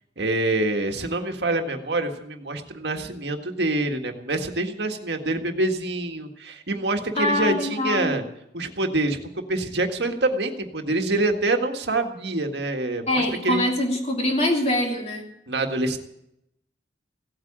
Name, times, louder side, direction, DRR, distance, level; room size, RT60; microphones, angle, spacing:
voice 1, 0.2-8.2 8.5-13.6 15.5-16.0, right 2 dB, 70° right, 4 dB, 1.8 m, -26 dB
voice 2, 7.1-8.2 13.1-15.3, left 1 dB, 35° left, 1 dB, 2.9 m, -24 dB
17.0 x 8.8 x 8.8 m, 0.80 s
head